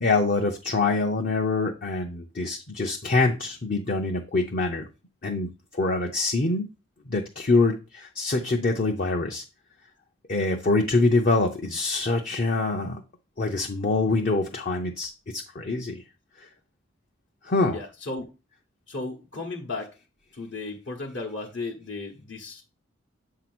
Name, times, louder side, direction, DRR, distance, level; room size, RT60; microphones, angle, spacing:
voice 1, 0.0-4.9 5.2-6.7 7.1-9.4 10.3-13.0 13.4-16.0 16.4-16.5 17.4-17.8, left 3 dB, 45° left, 1 dB, 0.6 m, -25 dB
voice 2, 17.7-18.3 18.9-19.9 20.3-22.6, left 3 dB, 60° left, 0 dB, 1.0 m, -35 dB
7.7 x 2.8 x 6.0 m, 0.30 s
head